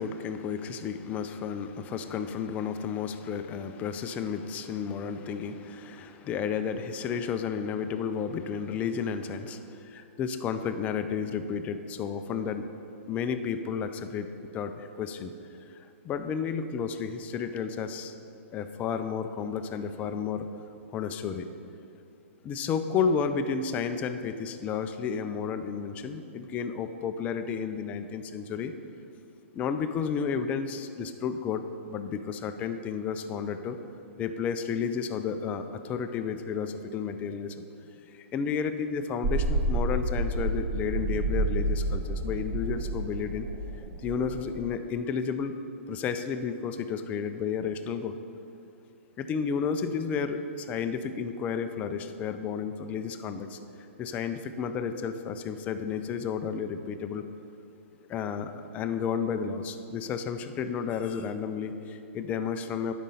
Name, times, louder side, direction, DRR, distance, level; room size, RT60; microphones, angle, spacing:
voice 1, 0.0-12.7 13.1-14.3 14.5-15.3 16.0-18.1 18.5-20.5 20.9-21.5 22.4-28.7 29.5-33.8 34.2-37.6 38.1-43.5 44.0-45.5 45.9-48.2 49.2-53.6 54.0-57.2 58.1-62.9, left 6 dB, 20° left, 8 dB, 0.4 m, -32 dB
sound 1, 39.2-44.6, right 2 dB, 35° right, 1.0 m, -29 dB
12.0 x 5.1 x 5.6 m, 2.7 s
hypercardioid pair, 145°, 7 cm